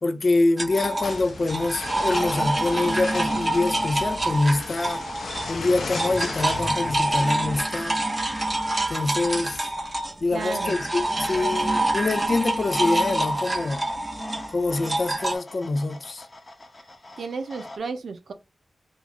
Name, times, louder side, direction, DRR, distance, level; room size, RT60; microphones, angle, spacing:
voice 1, 0.0-5.0 5.5-8.0 8.9-9.7 10.2-13.9 14.5-16.3, left 2 dB, 50° left, 0.4 m, -25 dB
sound 1, 0.6-5.6 5.8-15.4, right 1 dB, 25° right, 0.8 m, -27 dB
sound 2, 1.0-7.6, left 3 dB, 85° left, 0.9 m, -35 dB
sound 3, 6.2-8.8 10.3-17.8, left 2 dB, 30° left, 0.8 m, -43 dB
voice 2, 10.3-10.9 17.2-18.3, right 4 dB, 85° right, 0.6 m, -33 dB
3.7 x 2.3 x 2.9 m
wide cardioid pair, 90°, 0 cm